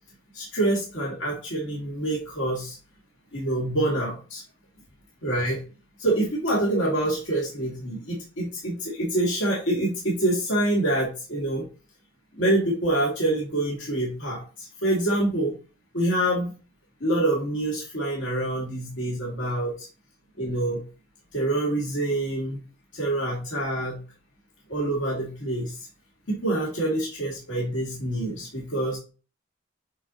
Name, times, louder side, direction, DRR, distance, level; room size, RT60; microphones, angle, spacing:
voice 1, 0.3-2.8 3.3-4.4 5.2-5.6 6.0-11.6 12.4-15.5 15.9-16.5 17.0-19.9 20.4-20.8 21.3-22.6 22.9-24.0 24.7-25.7 26.3-29.0, right 1 dB, 80° left, -5 dB, 2.3 m, -26 dB
8.1 x 2.9 x 4.0 m, 0.34 s
head